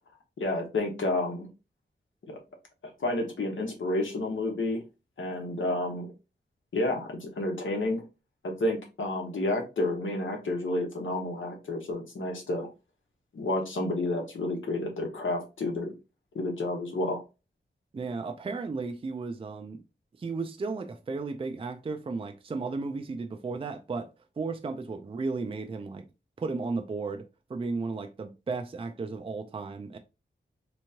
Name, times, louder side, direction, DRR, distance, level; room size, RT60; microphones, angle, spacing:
voice 1, 0.4-1.5 2.2-2.4 3.0-4.8 5.2-6.1 6.7-8.0 8.4-12.7 13.3-15.9 16.3-17.2, left 2 dB, 85° left, 1.0 m, -30 dB
voice 2, 17.9-19.8 20.2-26.0 26.4-30.0, right 4 dB, 30° right, 0.4 m, -34 dB
3.4 x 3.0 x 2.7 m
wide cardioid pair, 120°, 20 cm